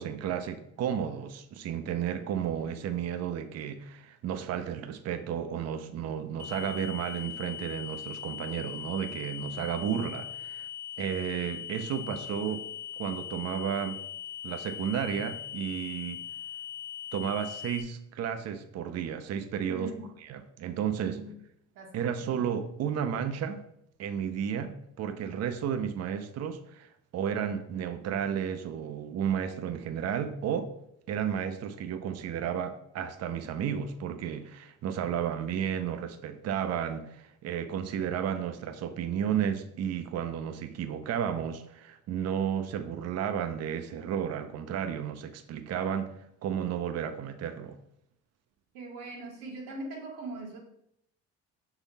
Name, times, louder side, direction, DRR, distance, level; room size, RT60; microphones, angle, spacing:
voice 1, 0.0-10.7 11.0-12.7 13.0-14.0 14.4-16.2 17.1-19.9 20.3-21.2 21.9-23.6 24.0-30.7 31.1-46.1 46.4-47.8, right 8 dB, 55° right, 8 dB, 0.6 m, -32 dB
sound 1, 6.4-17.8, left 10 dB, 70° left, 1.0 m, -40 dB
voice 2, 19.7-20.0 21.0-21.3 21.7-22.2 48.7-50.6, right 2 dB, 90° right, 0 dB, 1.6 m, -40 dB
5.9 x 3.9 x 4.0 m, 0.76 s
cardioid pair, 95°, 31 cm